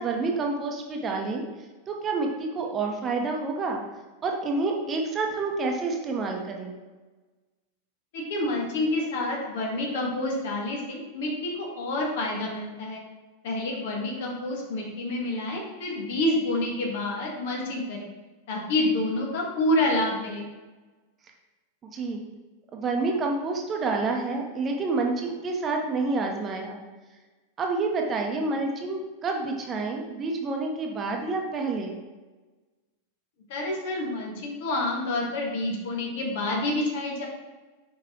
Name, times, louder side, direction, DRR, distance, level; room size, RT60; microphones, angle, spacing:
voice 1, 0.0-1.4 1.9-3.8 4.2-6.7 21.9-22.2 22.7-26.8 27.6-31.9, right 3 dB, 25° right, 2 dB, 1.0 m, -28 dB
voice 2, 8.1-13.0 13.4-18.1 18.5-20.4 33.5-37.3, left 1 dB, 55° left, -1 dB, 1.7 m, -28 dB
5.8 x 5.4 x 3.8 m, 1.2 s
figure-of-eight pair, 90°, 0 cm